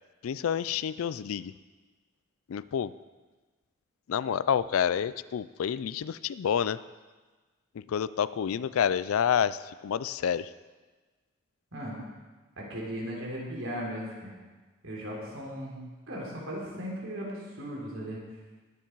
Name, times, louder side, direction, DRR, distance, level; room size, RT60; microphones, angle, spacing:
voice 1, 0.2-1.5 2.5-2.9 4.1-6.8 7.7-10.5, left 8 dB, 90° left, 16 dB, 0.4 m, -28 dB
voice 2, 12.6-14.3 14.8-18.2, equal, 75° right, -4 dB, 3.5 m, -37 dB
20.5 x 7.2 x 4.6 m, 1.3 s
head